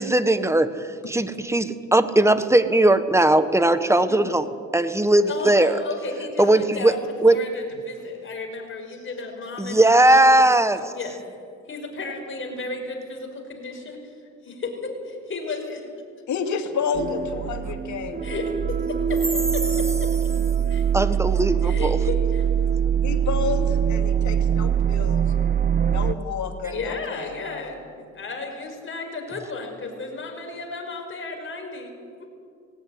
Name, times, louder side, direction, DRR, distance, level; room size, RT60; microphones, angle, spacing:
voice 1, 0.0-4.5 4.7-5.8 6.4-6.9 7.2-7.4 9.6-10.9 20.9-22.0, right 1 dB, 10° right, 11 dB, 1.3 m, -19 dB
voice 2, 5.3-7.0 7.3-10.4 10.9-11.2 11.7-14.0 14.4-15.9 18.2-19.2 19.5-20.1 20.7-20.8 21.6-22.5 26.7-31.9, left 3 dB, 40° left, 2 dB, 5.5 m, -33 dB
voice 3, 16.3-18.1 23.0-23.6 24.1-25.3 25.9-27.4, left 6 dB, 70° left, 4 dB, 2.5 m, -29 dB
sound 1, 16.9-26.1, right 8 dB, 30° right, 0.7 m, -23 dB
19.0 x 17.5 x 9.9 m, 2.3 s
cardioid pair, 90°, 30 cm